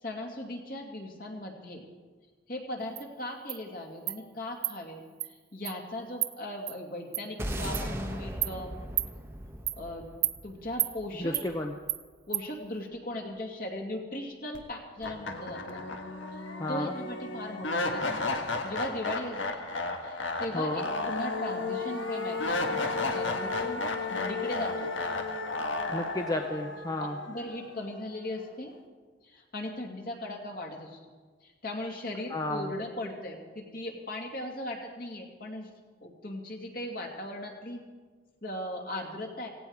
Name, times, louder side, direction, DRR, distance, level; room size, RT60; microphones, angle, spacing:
voice 1, 0.0-1.8 2.5-8.7 9.8-10.1 10.4-11.3 12.3-15.9 16.7-19.7 20.0-24.9 27.0-28.7 29.2-31.1 31.4-35.7 36.0-37.8 38.4-39.5, left 1 dB, 50° left, 1 dB, 2.5 m, -38 dB
Insect, 3.0-3.1 3.5-3.6 4.1-4.2 4.6-4.7 5.2-5.3 5.6-5.8 6.2-6.3 6.7-6.8 7.1-7.2 7.7-7.9 8.4-8.5 9.0-9.1 9.7-9.8 10.2-10.4 10.8-10.9 11.3-11.5 11.9-12.0 12.3-12.4, right 16 dB, 55° right, 0.6 m, -30 dB
sound 1, 7.4-11.8, right 1 dB, 10° right, 1.1 m, -38 dB
voice 2, 11.2-11.7 16.6-16.9 20.5-20.8 25.9-27.2 32.3-32.7, left 1 dB, 20° left, 3 dB, 0.7 m, -32 dB
sound 2, 14.5-14.6 15.0-28.1, left 3 dB, 80° left, 1.5 m, -33 dB
17.0 x 17.0 x 4.8 m, 1.4 s
head